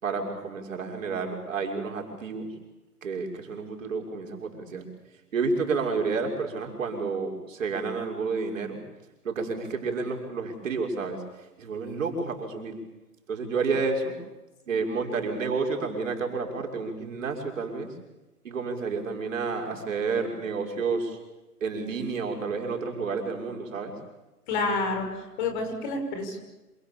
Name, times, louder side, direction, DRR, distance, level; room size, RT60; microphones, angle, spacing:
voice 1, 0.0-2.5 3.0-4.9 5.3-8.8 9.2-11.2 11.6-12.7 13.3-14.1 14.7-17.9 18.4-21.2 21.6-23.9, right 4 dB, 55° right, 2 dB, 6.2 m, -30 dB
voice 2, 24.5-26.4, left 3 dB, 30° left, 5 dB, 6.2 m, -29 dB
27.5 x 26.5 x 7.2 m, 1.1 s
figure-of-eight pair, 140°, 47 cm